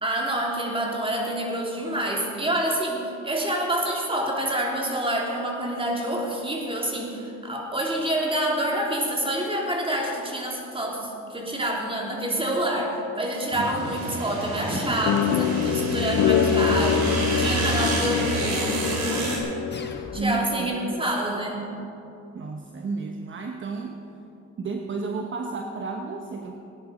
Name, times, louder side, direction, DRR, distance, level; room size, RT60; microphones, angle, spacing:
voice 1, 0.0-17.1 17.4-19.4 20.1-21.6, right 1 dB, 15° right, -1 dB, 3.1 m, -27 dB
sound 1, 13.5-19.4, right 2 dB, 70° right, 3.5 m, -29 dB
sound 2, 15.1-20.2, left 9 dB, 80° left, 0.9 m, -25 dB
sound 3, 19.7-20.7, left 4 dB, 35° left, 1.4 m, -40 dB
voice 2, 20.1-21.0 22.3-24.0 24.6-26.6, right 4 dB, 40° right, 3 dB, 1.1 m, -32 dB
18.5 x 10.5 x 5.1 m, 2.9 s
cardioid pair, 90°, 30 cm